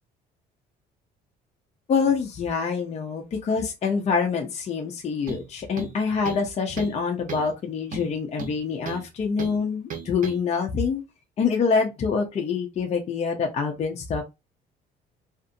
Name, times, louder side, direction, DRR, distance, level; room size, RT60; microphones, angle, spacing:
voice 1, 1.9-11.0 11.4-14.2, left 5 dB, 40° left, 0.6 m, -26 dB
sound 1, 5.3-5.5 5.8-6.5 6.8-7.0 7.3-7.5 7.9-9.1 9.4-9.6 9.9-10.4, right 6 dB, 55° right, 0.8 m, -35 dB
2.5 x 2.5 x 2.5 m
cardioid pair, 110°, 17 cm